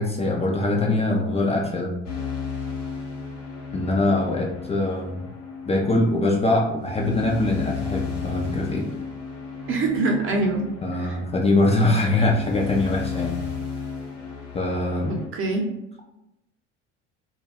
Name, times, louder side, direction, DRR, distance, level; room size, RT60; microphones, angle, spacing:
voice 1, 0.0-1.9 3.7-5.3 5.7-8.8 10.8-13.4 14.5-15.2, left 2 dB, 20° left, 0 dB, 0.4 m, -23 dB
sound 1, 2.0-15.3, left 5 dB, 80° left, 0.7 m, -34 dB
voice 2, 9.7-10.6 11.0-11.2 15.1-15.7, right 2 dB, 35° right, 1 dB, 0.8 m, -24 dB
2.3 x 2.0 x 3.4 m, 0.90 s
hypercardioid pair, 65°, 36 cm